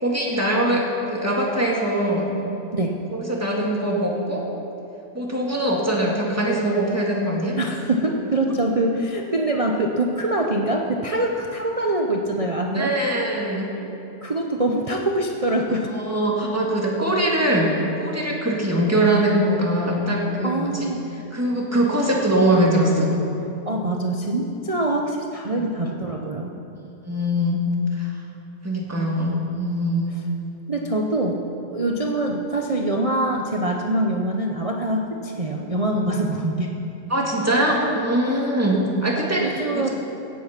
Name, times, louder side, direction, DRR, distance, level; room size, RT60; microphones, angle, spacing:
voice 1, 0.0-2.3 3.1-4.5 5.1-7.6 12.7-13.7 15.9-20.9 21.3-23.2 25.5-25.7 27.1-27.6 27.9-28.1 28.6-30.1 37.1-39.9, right 1 dB, 10° right, -3 dB, 1.8 m, -22 dB
voice 2, 7.6-12.9 13.7-13.9 14.2-15.9 20.4-21.0 23.6-26.5 30.7-36.7 39.4-39.9, right 1 dB, 65° right, 1 dB, 0.3 m, -24 dB
15.5 x 8.5 x 5.9 m, 2.8 s
omnidirectional pair, 1.8 m